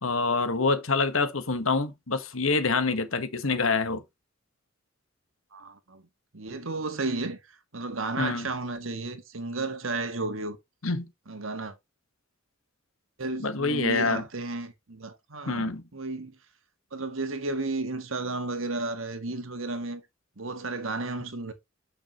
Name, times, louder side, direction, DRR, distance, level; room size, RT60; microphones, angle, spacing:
voice 1, 0.0-4.0 8.2-8.5 10.8-11.1 13.4-14.2 15.5-15.8, left 3 dB, 85° left, 1.4 m, -26 dB
voice 2, 5.5-6.0 6.3-10.6 11.3-11.7 13.2-16.4 16.9-20.0 20.4-21.5, right 3 dB, 75° right, 1.6 m, -33 dB
8.0 x 6.1 x 3.0 m
head